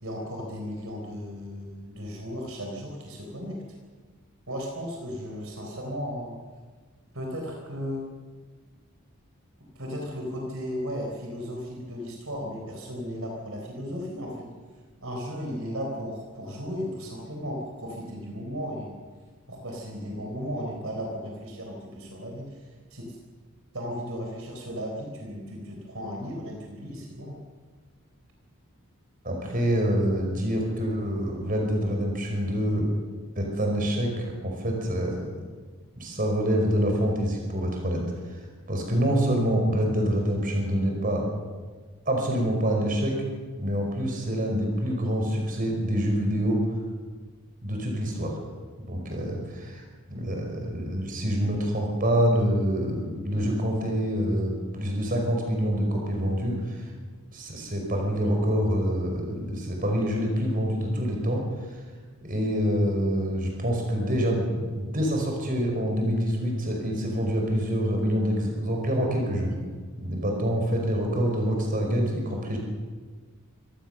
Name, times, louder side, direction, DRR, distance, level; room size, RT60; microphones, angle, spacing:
voice 1, 0.0-3.6 4.5-6.4 7.1-8.1 9.8-14.5 15.0-19.0 19.5-23.2 23.7-27.4, equal, 65° right, 1 dB, 4.1 m, -35 dB
voice 2, 29.2-32.9 33.4-35.3 36.0-38.0 38.3-38.4 38.7-41.2 42.1-43.2 43.6-46.6 47.6-48.4 48.8-56.8 57.3-61.4 62.2-69.5 70.0-72.6, equal, 40° right, 1 dB, 5.2 m, -26 dB
24.5 x 18.0 x 6.7 m, 1.5 s
head